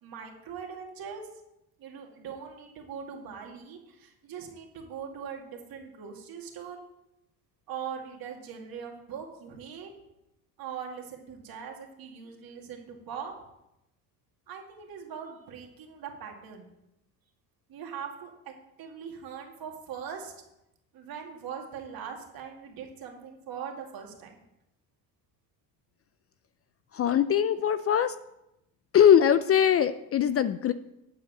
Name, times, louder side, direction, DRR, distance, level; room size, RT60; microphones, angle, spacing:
voice 1, 0.0-1.3 1.8-6.8 7.7-9.9 10.6-13.3 14.5-16.7 17.7-18.5 18.8-20.3 20.9-24.4, right 7 dB, 55° right, 2 dB, 2.2 m, -41 dB
voice 2, 26.9-28.1 28.9-30.7, left 9 dB, 35° left, 14 dB, 0.4 m, -21 dB
9.4 x 4.7 x 7.4 m, 0.87 s
supercardioid pair, 90°, 42 cm